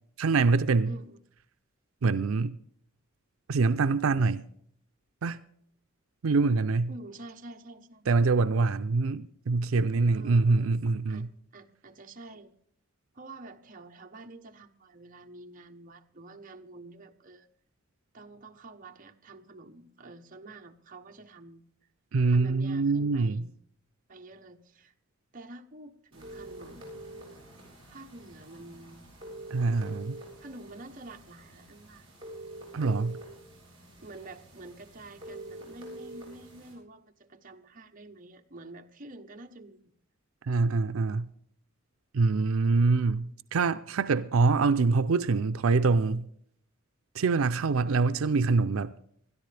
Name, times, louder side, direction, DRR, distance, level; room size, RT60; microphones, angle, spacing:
voice 1, 0.2-0.9 2.0-2.6 3.5-4.4 5.2-5.4 6.2-6.9 8.1-11.3 22.1-23.4 29.5-30.2 32.7-33.2 40.4-41.3 42.1-46.3 47.1-48.9, right 4 dB, 85° right, 0.5 m, -25 dB
voice 2, 0.9-1.2 6.9-8.3 10.1-11.3 11.5-12.5 13.1-17.5 18.1-21.6 22.3-23.5 24.1-24.9 25.3-27.0 27.9-29.0 30.4-32.1 32.8-32.9 34.0-39.8, right 2 dB, 40° right, 1.0 m, -48 dB
sound 1, 26.1-36.7, right 1 dB, 25° right, 7.8 m, -46 dB
21.0 x 13.0 x 3.4 m
head